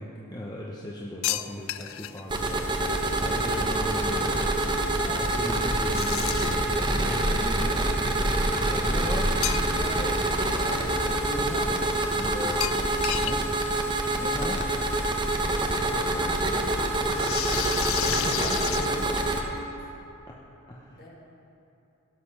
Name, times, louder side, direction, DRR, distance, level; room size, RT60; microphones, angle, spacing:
voice 1, 0.0-4.4 5.0-8.0 8.4-10.3 11.3-11.8 12.1-12.6 13.2-13.5 14.1-14.7 18.0-18.9 20.3-20.4 20.7-21.1, left 1 dB, 20° left, -3 dB, 0.8 m, -37 dB
sound 1, 1.2-2.2 5.9-6.7 9.4-10.0 10.4-10.5 12.6-13.4 13.7-13.8 14.0-14.1 15.3-15.4 17.1-19.5, left 13 dB, 65° left, 0.4 m, -31 dB
sound 2, 2.3-19.4, right 1 dB, 20° right, 0.9 m, -26 dB
voice 2, 10.6-11.3 11.6-11.9 15.2-17.5 18.3-19.7 20.9-21.1, equal, 45° left, -5 dB, 2.7 m, -43 dB
17.0 x 6.7 x 5.7 m, 3.0 s
head